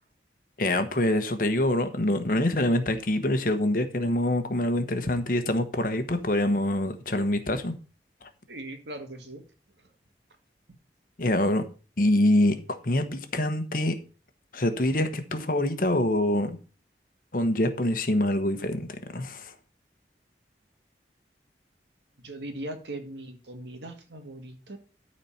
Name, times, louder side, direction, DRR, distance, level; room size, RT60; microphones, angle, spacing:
voice 1, 0.6-7.7 11.2-11.7 12.0-14.0 14.5-16.5 17.3-19.5, left 1 dB, 50° left, 1.1 m, -25 dB
voice 2, 8.5-9.4 22.2-24.8, right 1 dB, 80° right, 1.9 m, -39 dB
13.0 x 4.3 x 5.8 m
head